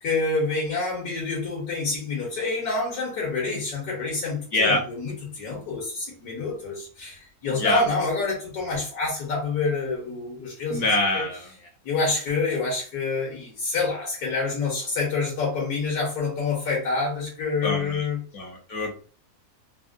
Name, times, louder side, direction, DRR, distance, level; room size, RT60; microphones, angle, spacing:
voice 1, 0.0-10.9 11.1-11.2 11.8-18.2, left 3 dB, 80° left, 1.5 m, -27 dB
voice 2, 10.7-11.4 17.6-18.1 18.3-18.9, left 2 dB, 60° left, 0.9 m, -24 dB
3.6 x 2.1 x 2.5 m
omnidirectional pair, 1.6 m